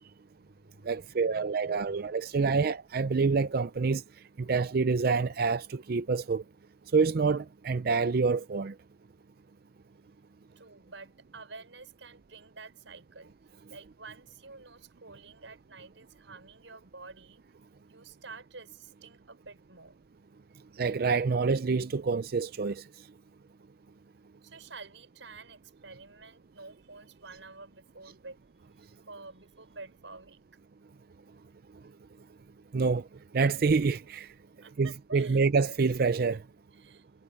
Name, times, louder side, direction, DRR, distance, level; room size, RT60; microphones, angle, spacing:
voice 1, 0.3-2.7 10.6-13.3 13.7-17.4 17.9-20.0 24.4-30.4 34.4-35.5 36.7-37.1, right 3 dB, 90° right, 5.8 m, -50 dB
voice 2, 0.9-4.0 4.5-6.4 6.9-8.7 20.8-22.8 32.7-33.0 33.3-34.3 34.8-36.4, right 4 dB, 55° right, 0.5 m, -27 dB
head